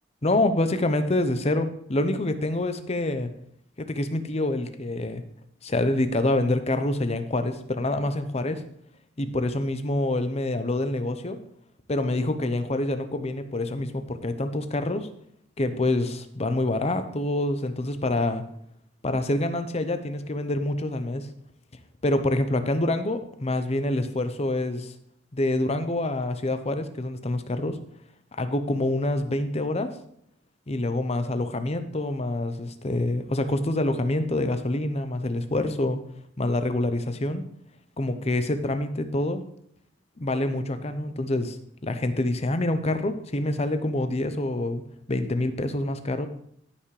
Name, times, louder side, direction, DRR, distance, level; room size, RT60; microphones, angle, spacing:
voice 1, 0.2-3.3 3.8-5.2 5.6-8.6 9.2-11.4 11.9-15.1 15.6-18.4 19.0-21.3 22.0-24.9 25.3-27.8 28.4-29.9 30.7-36.0 36.4-37.4 38.0-39.4 40.2-41.6 41.8-44.8 45.1-46.3, left 1 dB, 35° left, 9 dB, 0.8 m, -26 dB
16.5 x 5.8 x 3.3 m, 0.69 s
head